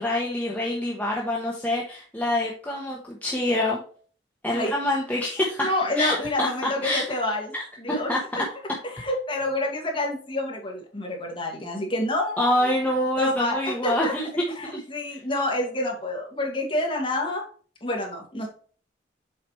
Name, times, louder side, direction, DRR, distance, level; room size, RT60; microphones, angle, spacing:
voice 1, 0.0-3.8 4.4-5.7 6.0-7.0 7.5-8.2 12.4-14.3 14.7-14.8, left 1 dB, 10° left, -3 dB, 1.0 m, -26 dB
voice 2, 5.6-7.5 7.8-8.4 8.8-12.6 13.2-14.1 14.6-17.4 17.8-18.5, left 1 dB, 30° left, 0 dB, 2.0 m, -28 dB
7.4 x 5.0 x 3.2 m, 0.43 s
head